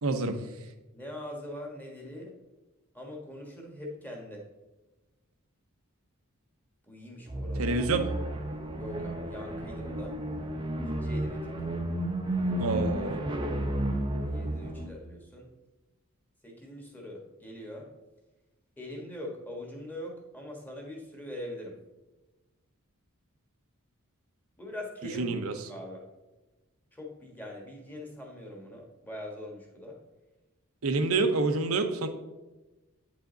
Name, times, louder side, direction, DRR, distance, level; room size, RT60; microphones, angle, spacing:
voice 1, 0.0-0.4 7.6-8.1 12.6-13.2 25.2-25.5 30.8-32.1, right 3 dB, 80° right, 7 dB, 0.8 m, -27 dB
voice 2, 0.9-2.4 2.9-4.5 6.8-7.8 8.8-10.2 10.8-11.6 14.3-15.5 16.4-17.9 18.8-21.8 24.6-26.0 26.9-30.0, left 1 dB, 10° left, -1 dB, 1.5 m, -42 dB
sound 1, 7.3-14.9, right 1 dB, 20° right, 0.8 m, -32 dB
9.1 x 5.0 x 3.9 m, 1.1 s
head